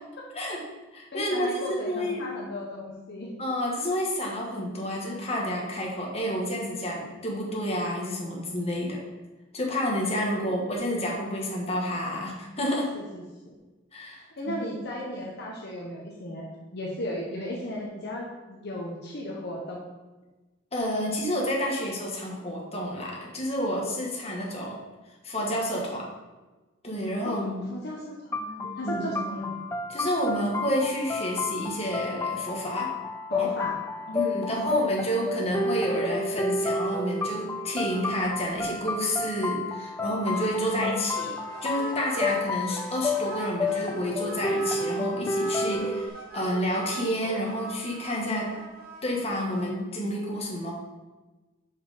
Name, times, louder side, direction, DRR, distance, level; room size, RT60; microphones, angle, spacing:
voice 1, 0.3-0.6 0.9-2.3 3.4-9.0 9.5-13.0 13.9-14.6 20.7-24.8 25.2-26.1 26.8-27.6 28.6-29.1 29.9-32.9 33.4-33.5 34.1-41.3 41.6-46.1 46.3-48.5 49.0-50.7, equal, 35° left, -2 dB, 1.4 m, -29 dB
voice 2, 1.1-3.3 12.9-13.2 14.4-19.8 27.2-29.5 33.3-33.8 34.1-34.8 40.6-41.3, left 1 dB, 60° left, -2 dB, 0.9 m, -36 dB
sound 1, 28.3-46.1, left 3 dB, 15° left, 0.3 m, -31 dB
sound 2, 37.8-38.3 38.6-38.7 39.0-39.1 40.3-42.4 42.7-49.7, right 3 dB, 50° right, 1.6 m, -41 dB
5.5 x 4.9 x 4.9 m, 1.2 s
head